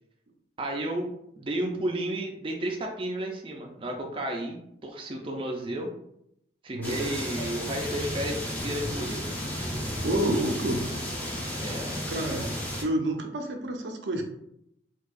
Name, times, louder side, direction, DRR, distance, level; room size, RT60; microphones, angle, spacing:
voice 1, 0.6-4.6 4.8-5.9 6.6-9.2 11.6-11.9, right 1 dB, 30° right, 1 dB, 0.4 m, -32 dB
voice 2, 6.7-7.2 10.0-10.8 12.1-12.5 12.8-14.2, right 1 dB, 80° right, 3 dB, 0.6 m, -29 dB
sound 1, 6.8-12.8, equal, 10° left, 0.6 m, -33 dB
4.5 x 2.3 x 2.4 m, 0.77 s
head